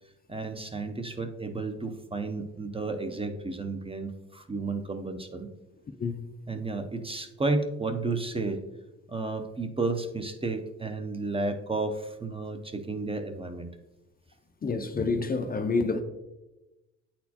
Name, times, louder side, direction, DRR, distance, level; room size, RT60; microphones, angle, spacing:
voice 1, 0.3-5.5 6.5-8.6 9.1-13.7, right 3 dB, 20° right, 0.5 m, -32 dB
voice 2, 14.6-16.0, left 4 dB, 30° left, 0.5 m, -28 dB
8.3 x 4.3 x 2.8 m
cardioid pair, 90°, 30 cm